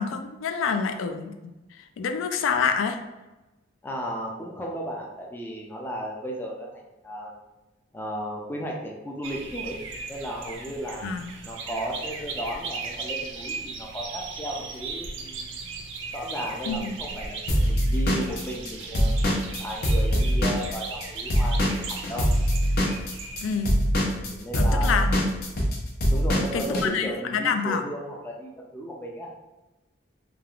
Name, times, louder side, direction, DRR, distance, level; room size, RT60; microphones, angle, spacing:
voice 1, 0.0-1.5 2.0-3.0 11.0-11.3 16.7-16.9 23.4-23.8 24.5-25.3 26.5-27.8, left 5 dB, 90° left, 6 dB, 0.3 m, -27 dB
voice 2, 3.8-7.4 7.9-9.8 10.1-11.1 11.4-15.7 16.1-19.3 19.6-22.3 24.2-25.0 26.1-29.3, equal, 10° left, -1 dB, 0.3 m, -35 dB
sound 1, 9.2-23.7, right 4 dB, 75° right, 0.4 m, -37 dB
Drum kit / Drum, 17.5-21.0 21.3-26.8, equal, 55° left, 0.6 m, -23 dB
3.3 x 2.4 x 2.3 m, 1.0 s
head